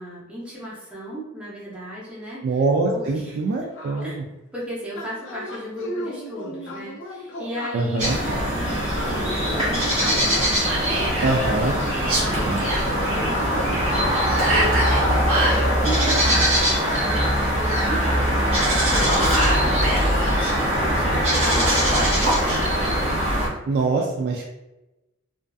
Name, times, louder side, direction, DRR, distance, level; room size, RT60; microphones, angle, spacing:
voice 1, 0.0-3.7 4.0-4.2 4.5-10.3 10.8-17.3 17.6-23.0 24.4-24.5, equal, 5° right, -8 dB, 0.7 m, -36 dB
voice 2, 2.4-4.2 7.7-8.2 11.2-11.8 12.4-12.6 23.7-24.5, right 3 dB, 50° right, -1 dB, 0.3 m, -23 dB
sound 1, 3.8-4.1 5.0-8.5 8.9-12.4 12.9-15.9, left 1 dB, 65° left, 0.4 m, -35 dB
sound 2, 8.0-23.5, equal, 35° right, 1.3 m, -21 dB
Whispering, 10.6-11.4 12.0-12.8 14.4-15.6 18.7-20.5 21.4-22.6, right 1 dB, 85° right, 0.7 m, -25 dB
2.4 x 2.4 x 2.3 m, 0.98 s
head